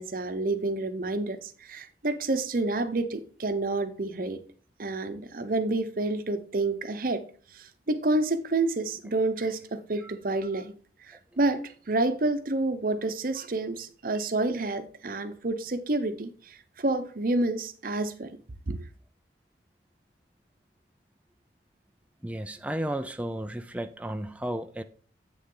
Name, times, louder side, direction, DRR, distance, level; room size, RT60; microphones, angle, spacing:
voice 1, 0.0-4.4 4.8-7.2 7.5-10.7 11.0-18.3 18.7-18.8, right 2 dB, 50° right, 0.8 m, -29 dB
voice 2, 22.2-24.8, right 1 dB, 10° right, 0.4 m, -33 dB
8.5 x 6.6 x 3.8 m
head